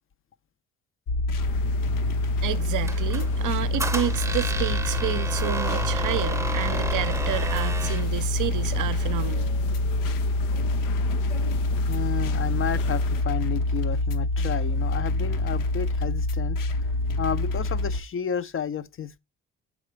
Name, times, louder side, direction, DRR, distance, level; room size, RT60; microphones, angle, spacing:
sound 1, 1.1-18.0, left 2 dB, 65° left, 0.9 m, -26 dB
sound 2, 1.4-13.2, left 9 dB, 90° left, 0.6 m, -40 dB
voice 1, 2.4-9.5, right 13 dB, 60° right, 0.6 m, -30 dB
Squeak, 2.8-8.1, right 2 dB, 10° right, 0.7 m, -32 dB
voice 2, 11.9-16.9 17.2-19.2, left 8 dB, 35° left, 0.5 m, -32 dB
6.4 x 4.9 x 3.2 m
hypercardioid pair, 55°, 36 cm